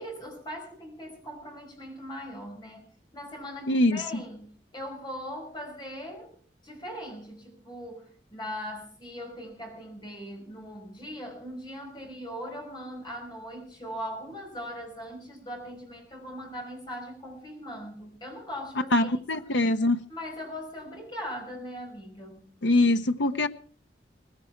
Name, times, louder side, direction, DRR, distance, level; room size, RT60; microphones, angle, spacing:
voice 1, 0.0-6.3 6.6-19.5 20.1-22.6, equal, 25° left, 5.2 m, -40 dB
voice 2, 3.7-4.0 18.9-20.0 22.6-23.5, left 2 dB, 90° left, 0.9 m, -23 dB
19.0 x 16.0 x 4.5 m
head